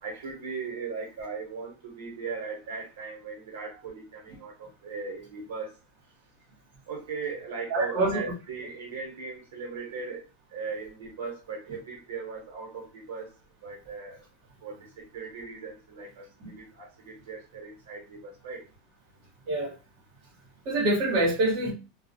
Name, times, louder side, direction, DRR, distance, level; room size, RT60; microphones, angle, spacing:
voice 1, 0.0-5.8 6.9-10.2 10.5-13.3 13.6-14.2 14.6-18.6, right 4 dB, 85° right, 0.9 m, -38 dB
voice 2, 7.7-8.2 19.5-19.7 20.6-21.7, right 2 dB, 40° right, 1.1 m, -25 dB
2.2 x 2.1 x 2.6 m
supercardioid pair, 175°, 0 cm